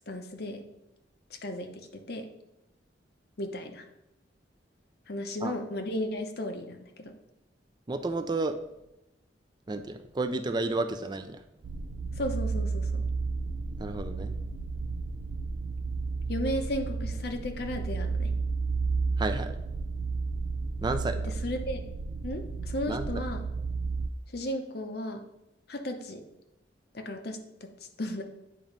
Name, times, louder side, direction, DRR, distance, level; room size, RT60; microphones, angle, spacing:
voice 1, 0.1-0.7 1.3-2.3 3.4-3.9 5.1-7.2 12.1-13.1 16.3-18.3 21.2-21.8 22.2-23.4 24.3-25.3 25.7-26.2 26.9-27.7 28.0-28.2, left 1 dB, 60° left, 5 dB, 0.8 m, -35 dB
voice 2, 7.9-8.6 9.7-11.4 13.8-14.3 19.2-19.5 20.8-21.3 22.9-23.2, right 2 dB, 25° right, 8 dB, 0.4 m, -31 dB
sound 1, 11.6-24.1, right 4 dB, 85° right, 0.4 m, -32 dB
8.7 x 3.0 x 5.2 m, 0.88 s
head